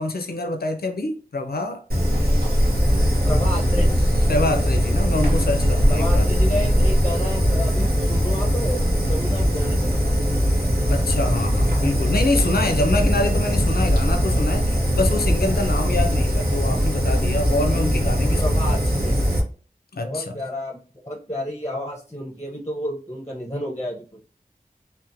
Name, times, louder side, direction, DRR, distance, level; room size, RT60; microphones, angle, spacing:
voice 1, 0.0-1.8 4.3-6.3 10.9-18.8 19.9-20.4, left 2 dB, 85° left, 0.4 m, -26 dB
Fire, 1.9-19.4, equal, 85° right, 0.7 m, -20 dB
voice 2, 3.3-4.0 5.9-10.2 18.4-19.2 20.0-20.8 21.0-24.2, left 1 dB, 20° left, 0.5 m, -31 dB
2.8 x 2.0 x 2.5 m
wide cardioid pair, 45°, 15 cm